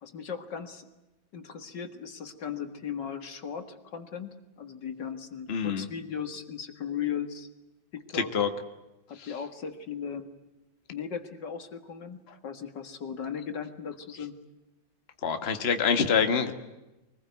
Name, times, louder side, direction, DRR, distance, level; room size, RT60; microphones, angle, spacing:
voice 1, 0.0-0.9 1.3-7.5 7.9-8.3 9.1-10.3 10.9-14.4, left 7 dB, 65° left, 8 dB, 2.4 m, -37 dB
voice 2, 5.5-5.9 8.1-8.5 9.2-9.3 15.2-16.5, left 6 dB, 35° left, 7 dB, 1.8 m, -26 dB
24.5 x 20.0 x 9.4 m, 1.0 s
omnidirectional pair, 2.1 m